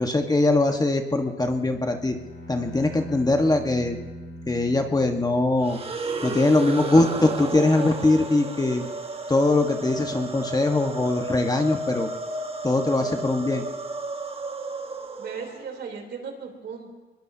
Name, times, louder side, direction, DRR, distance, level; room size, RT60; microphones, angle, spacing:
voice 1, 0.0-2.1 2.5-4.0 4.5-5.8 6.2-8.9 9.3-12.1 12.6-13.6, left 2 dB, 20° left, 4 dB, 1.5 m, -22 dB
Bowed string instrument, 1.2-6.0, equal, 85° left, 3.3 m, -41 dB
sound 1, 5.6-15.8, right 2 dB, 30° right, 1.5 m, -33 dB
voice 2, 15.2-17.0, right 5 dB, 60° right, 2 dB, 3.7 m, -36 dB
23.0 x 21.0 x 2.9 m, 1.2 s
cardioid pair, 90°, 20 cm